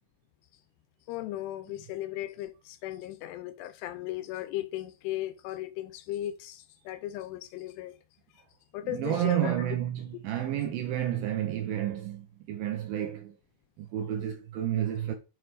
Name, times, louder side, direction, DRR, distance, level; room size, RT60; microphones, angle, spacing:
voice 1, 1.1-7.9 8.7-9.5, left 14 dB, 85° left, 2.6 m, -36 dB
voice 2, 8.8-13.3 13.8-15.1, right 11 dB, 75° right, 2.2 m, -31 dB
7.5 x 5.0 x 4.1 m
omnidirectional pair, 5.0 m